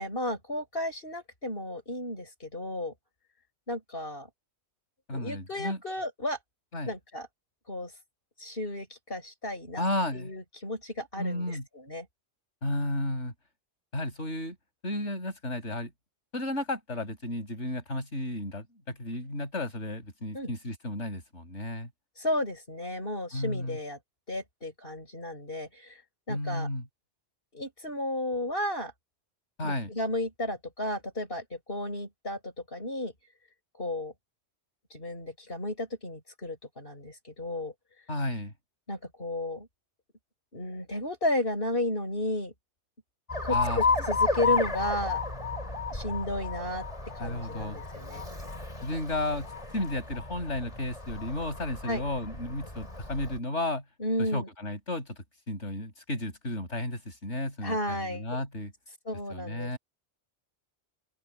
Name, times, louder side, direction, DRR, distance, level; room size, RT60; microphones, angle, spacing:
voice 1, 0.0-2.9 3.7-4.3 5.1-6.4 6.9-7.3 7.7-7.9 8.4-9.8 10.1-12.1 20.3-20.5 22.2-24.0 24.3-26.0 26.3-26.7 27.5-28.9 29.6-33.1 33.8-34.1 34.9-37.7 38.9-39.7 40.5-42.5 43.4-45.2 45.9-46.9 47.1-48.2 51.9-52.0 54.0-54.5 57.6-58.3 59.1-59.7, left 1 dB, 55° left, 7.1 m, -33 dB
voice 2, 5.1-5.8 6.7-6.9 9.8-10.3 11.2-11.7 12.6-13.3 13.9-14.6 14.8-15.9 16.3-21.9 23.3-23.8 26.3-26.9 29.6-29.9 38.1-38.5 43.5-43.8 47.2-47.8 48.8-49.5 49.7-53.8 54.2-58.7 59.3-59.8, left 1 dB, 90° left, 7.4 m, -33 dB
Alarm, 43.3-53.4, left 4 dB, 30° left, 5.0 m, -32 dB
open air
omnidirectional pair, 1.2 m